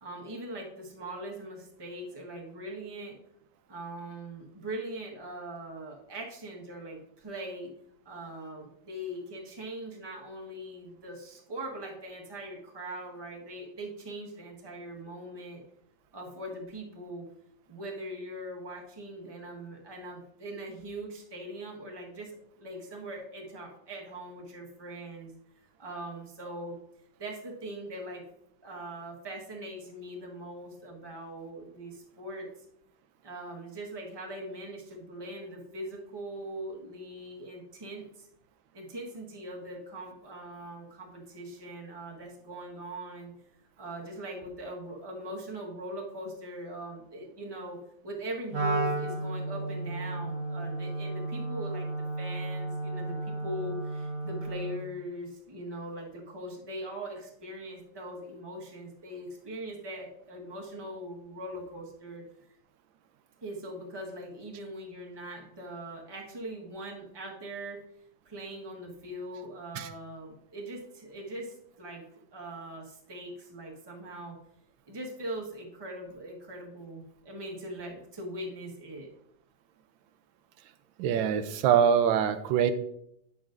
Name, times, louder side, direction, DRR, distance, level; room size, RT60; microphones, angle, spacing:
voice 1, 0.0-3.2 3.7-7.7 8.0-15.6 16.1-17.3 17.7-25.3 25.8-26.7 27.2-28.3 28.6-32.5 33.2-38.3 38.7-43.3 43.8-47.8 48.0-51.9 52.2-62.2 63.4-67.8 68.2-72.1 72.3-74.4 74.9-79.1, right 1 dB, 15° right, -1 dB, 1.1 m, -41 dB
Wind instrument woodwind instrument, 48.5-54.9, right 2 dB, 55° right, 1.2 m, -33 dB
voice 2, 81.0-82.7, right 8 dB, 85° right, 11 dB, 1.4 m, -24 dB
9.7 x 7.1 x 2.5 m, 0.75 s
omnidirectional pair, 2.1 m